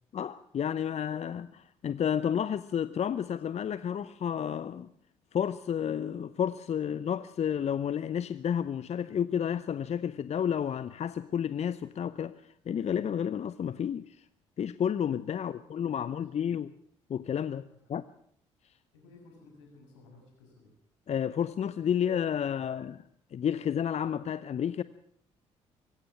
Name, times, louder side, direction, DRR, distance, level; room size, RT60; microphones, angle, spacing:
voice 1, 0.1-4.9 5.3-14.2 14.6-16.7 17.1-18.0 21.1-23.0 23.3-24.8, left 8 dB, 45° left, 0.8 m, -31 dB
voice 2, 15.5-16.6 17.9-18.0 18.9-20.7, left 3 dB, 80° left, 6.9 m, -56 dB
23.0 x 15.5 x 7.3 m
hypercardioid pair, 50°, 16 cm